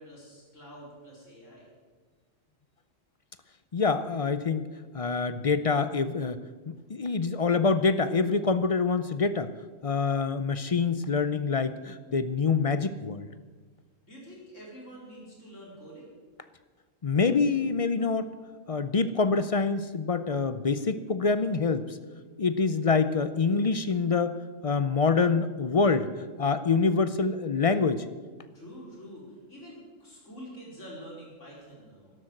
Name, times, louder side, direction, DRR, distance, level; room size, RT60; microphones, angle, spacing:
voice 1, 0.0-1.7 14.0-16.1 28.5-32.1, equal, 65° left, -4 dB, 5.1 m, -46 dB
voice 2, 3.7-4.7 4.9-6.4 6.9-9.5 9.8-13.3 17.0-18.3 18.7-22.0 22.4-24.4 24.6-28.0, left 4 dB, 45° left, 12 dB, 0.4 m, -26 dB
12.5 x 12.0 x 7.8 m, 1.4 s
omnidirectional pair, 1.4 m